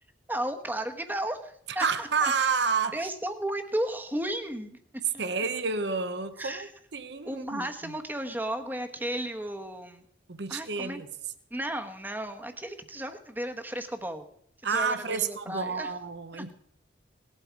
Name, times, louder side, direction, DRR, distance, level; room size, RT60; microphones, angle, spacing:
voice 1, 0.3-2.3 2.9-4.8 5.1-5.2 6.4-6.7 7.2-10.0 10.5-11.0 11.5-14.2 14.7-15.9 16.3-16.4, right 1 dB, 10° right, 1.1 m, -34 dB
voice 2, 1.8-3.0 5.2-7.9 10.3-11.1 14.6-16.5, right 5 dB, 60° right, 0.9 m, -30 dB
18.5 x 12.0 x 4.6 m
head